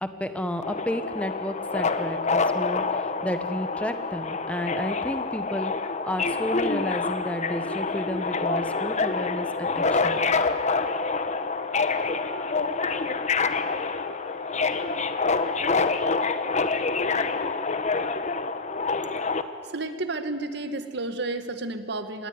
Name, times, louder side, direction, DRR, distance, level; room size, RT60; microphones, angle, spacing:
voice 1, 0.0-5.7 6.0-10.2, equal, 5° left, 8 dB, 1.4 m, -32 dB
Subway metro underground, 0.6-19.4, left 4 dB, 40° left, 1.2 m, -27 dB
Wind instrument woodwind instrument, 7.8-17.7, left 5 dB, 80° left, 7.3 m, -43 dB
voice 2, 19.6-22.3, right 2 dB, 65° right, 9 dB, 1.8 m, -31 dB
26.0 x 20.0 x 9.7 m, 2.2 s
head